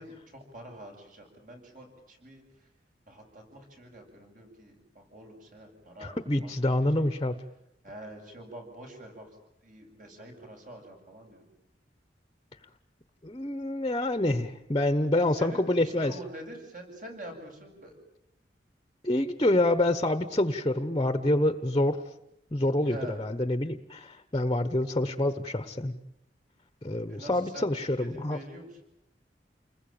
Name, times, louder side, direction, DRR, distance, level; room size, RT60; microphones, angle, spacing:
voice 1, 0.0-2.4 3.1-6.2 6.4-6.5 7.0-7.1 7.8-9.3 9.6-11.4 15.4-18.0 22.8-23.2 27.1-28.7, right 1 dB, 50° right, 3 dB, 7.7 m, -45 dB
voice 2, 6.0-7.4 13.2-16.1 19.0-22.0 22.5-25.9 26.8-28.4, left 1 dB, 25° left, 10 dB, 1.2 m, -27 dB
29.5 x 21.0 x 9.0 m, 0.81 s
head